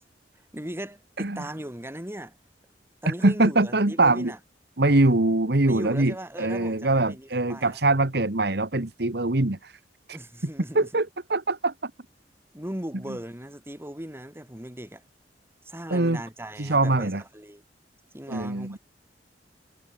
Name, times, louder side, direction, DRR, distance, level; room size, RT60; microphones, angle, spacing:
voice 1, 0.3-2.3 3.0-4.4 5.7-7.8 10.1-10.9 12.5-15.0 15.6-17.6 18.1-18.8, right 1 dB, 15° right, 2.8 m, -38 dB
voice 2, 3.0-4.3 4.8-9.8 10.1-10.2 10.7-11.9 15.9-16.2 16.6-17.2 18.3-18.8, right 2 dB, 65° right, 1.7 m, -23 dB
head